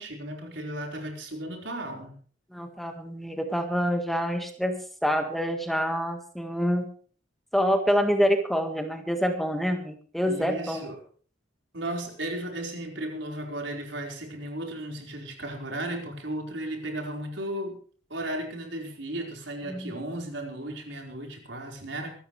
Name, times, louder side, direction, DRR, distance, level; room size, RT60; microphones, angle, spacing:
voice 1, 0.0-2.1 10.3-11.0 11.7-17.8 18.1-22.1, right 1 dB, 75° right, 1 dB, 4.7 m, -35 dB
voice 2, 2.5-6.8 7.5-10.9 19.7-19.9, equal, ahead, 5 dB, 1.7 m, -26 dB
24.5 x 13.0 x 3.3 m, 0.43 s
head